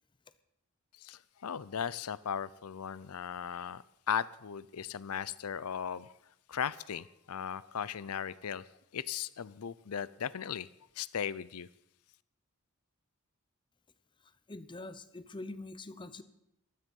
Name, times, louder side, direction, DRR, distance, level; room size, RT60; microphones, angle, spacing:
voice 1, 1.0-6.1 6.5-8.6 8.9-10.7 11.0-11.7, left 8 dB, 75° left, 19 dB, 0.5 m, -37 dB
voice 2, 14.2-16.2, left 2 dB, 20° left, 14 dB, 0.7 m, -45 dB
15.0 x 13.0 x 5.4 m, 0.80 s
head